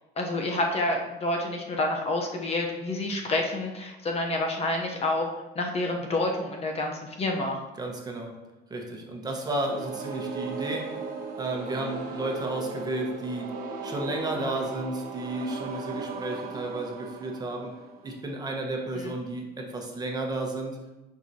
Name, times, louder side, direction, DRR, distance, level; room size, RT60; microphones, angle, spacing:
voice 1, 0.2-5.3 5.5-7.6 18.9-19.1, left 2 dB, 35° left, 1 dB, 0.8 m, -28 dB
voice 2, 7.8-8.3 8.7-10.9 11.4-13.5 13.8-17.7 18.0-20.8, right 2 dB, 20° right, 1 dB, 1.1 m, -32 dB
sound 1, 9.5-18.4, right 3 dB, 50° right, 1.2 m, -37 dB
10.5 x 4.6 x 2.8 m, 1.0 s
cardioid pair, 135°, 19 cm